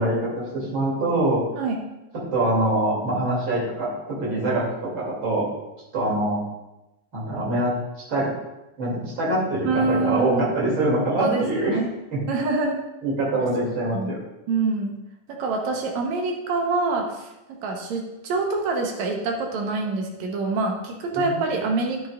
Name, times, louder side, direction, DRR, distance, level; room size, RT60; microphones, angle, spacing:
voice 1, 0.0-1.4 2.3-3.9 4.2-5.5 5.9-6.4 7.1-7.7 8.1-8.3 8.8-11.8 12.1-12.2 13.0-14.2 21.1-21.4, right 1 dB, 40° right, -5 dB, 3.2 m, -24 dB
voice 2, 9.6-10.5 11.2-11.9 12.3-12.8 13.9-14.1 14.5-15.0 15.3-17.3 17.6-22.1, right 3 dB, 65° right, 1 dB, 2.2 m, -25 dB
10.0 x 9.1 x 2.5 m, 0.97 s
omnidirectional pair, 3.7 m